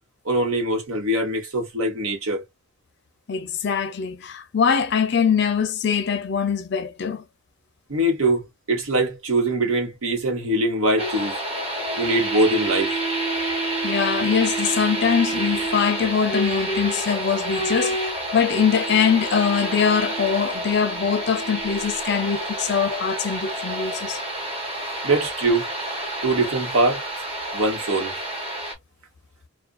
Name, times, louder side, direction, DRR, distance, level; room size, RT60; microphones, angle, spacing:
voice 1, 0.2-2.4 7.9-11.4 12.0-12.9 25.0-25.7 26.2-27.0 27.5-28.1, right 1 dB, 85° right, 1.1 m, -22 dB
voice 2, 3.3-7.2 13.8-24.2, left 7 dB, 50° left, 0.4 m, -22 dB
sound 1, 11.0-28.7, right 1 dB, 25° right, 0.9 m, -28 dB
2.4 x 2.2 x 2.3 m
head